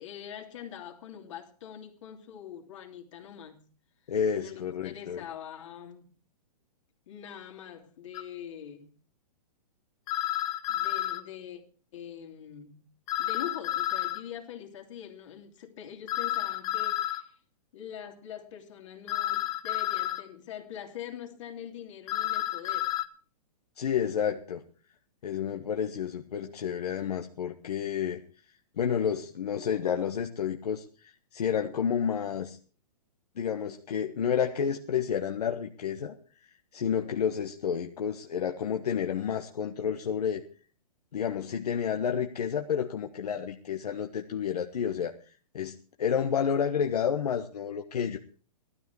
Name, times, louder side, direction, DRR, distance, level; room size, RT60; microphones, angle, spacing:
voice 1, 0.0-3.6 4.4-6.1 7.1-8.9 10.7-11.6 11.9-12.9 13.2-17.3 17.7-22.9, left 9 dB, 50° left, 3.0 m, -43 dB
voice 2, 4.1-5.2 23.8-24.6 25.2-28.2 28.8-32.6 33.4-36.2 36.4-40.4 41.1-48.2, left 8 dB, 70° left, 1.3 m, -30 dB
sound 1, 8.1-8.2 10.1-11.2 13.1-14.2 16.1-17.2 19.1-20.2 22.1-23.0, left 14 dB, 15° left, 0.6 m, -30 dB
15.5 x 13.0 x 4.7 m
hypercardioid pair, 160°, 21 cm